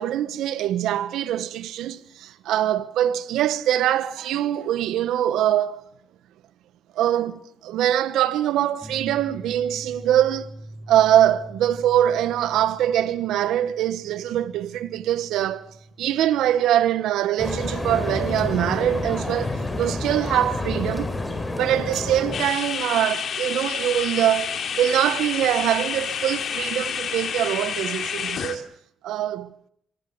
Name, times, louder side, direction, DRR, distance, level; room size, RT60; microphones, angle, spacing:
voice 1, 0.0-5.8 6.9-10.5 10.9-15.7 16.0-21.2 21.6-28.7 29.0-29.6, right 11 dB, 85° right, 1.1 m, -23 dB
sound 1, 8.8-20.0, right 1 dB, 5° right, 3.9 m, -45 dB
sound 2, 17.4-22.4, left 2 dB, 20° left, 4.9 m, -28 dB
sound 3, 22.3-28.6, left 7 dB, 60° left, 2.9 m, -29 dB
25.5 x 18.0 x 8.5 m
cardioid pair, 90°, 0 cm